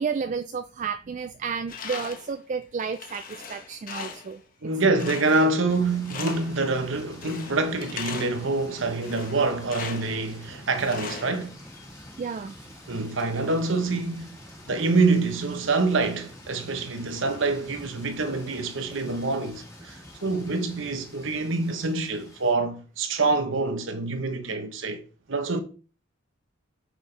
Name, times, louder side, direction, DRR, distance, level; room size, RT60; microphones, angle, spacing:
voice 1, 0.0-4.4 12.2-12.7, right 5 dB, 35° right, 0.3 m, -31 dB
Tools, 1.7-2.3 2.8-4.4 5.0-5.7 6.0-6.6 7.2-8.5 9.0-10.2 10.8-11.8, left 6 dB, 40° left, 1.0 m, -39 dB
voice 2, 4.6-11.6 12.9-14.4 14.7-25.0 25.3-25.6, right 3 dB, 65° right, 1.0 m, -26 dB
sound 1, 5.7-22.5, left 1 dB, 15° left, 1.6 m, -46 dB
6.1 x 6.1 x 3.3 m
head